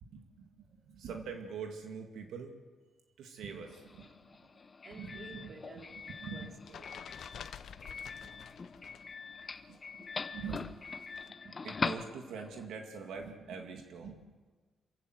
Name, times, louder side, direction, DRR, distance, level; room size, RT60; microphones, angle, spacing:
voice 1, 0.0-2.5 3.2-4.1 4.4-4.5 4.9-5.5 6.2-6.5 8.2-8.4 9.7-10.0 10.3-10.7 11.3-14.2, right 5 dB, 75° right, 2.2 m, -44 dB
Doorbell, 3.6-12.7, left 4 dB, 25° left, 0.8 m, -42 dB
voice 2, 4.8-6.0 6.3-7.1 8.5-8.6, right 3 dB, 45° right, 2.8 m, -52 dB
sound 1, 5.8-9.1 9.4-11.3, left 8 dB, 55° left, 0.8 m, -50 dB
27.0 x 15.5 x 8.0 m
cardioid pair, 155°, 0 cm